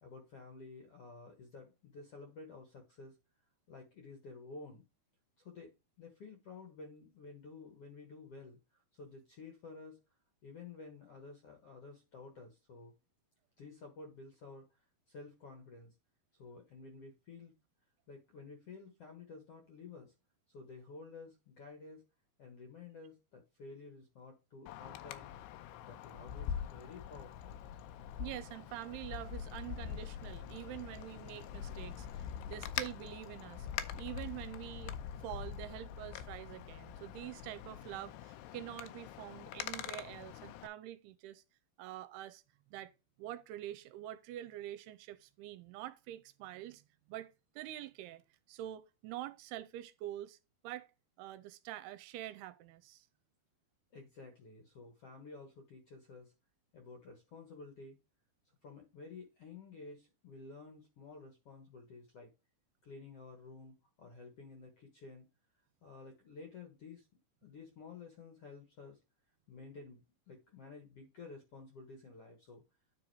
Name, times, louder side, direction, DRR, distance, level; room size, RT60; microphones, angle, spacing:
voice 1, 0.0-3.2 3.7-4.8 5.4-5.7 6.0-10.0 10.4-12.9 13.6-14.8 15.1-15.9 16.4-17.5 18.1-20.1 20.5-22.0 22.4-25.3 25.8-27.6 53.9-56.3 56.7-58.0 58.6-62.3 62.8-65.3 65.8-67.1 67.4-69.0 69.5-72.6, left 4 dB, 60° left, 1.6 m, -52 dB
Wind, 24.7-40.7, left 9 dB, 90° left, 2.7 m, -44 dB
voice 2, 28.2-33.7 34.0-35.0 35.2-41.4 41.8-42.4 42.7-42.9 43.2-46.8 47.1-48.2 48.5-50.4 50.6-50.9 51.2-53.1, right 14 dB, 85° right, 2.5 m, -46 dB
9.8 x 3.7 x 4.7 m
omnidirectional pair, 4.7 m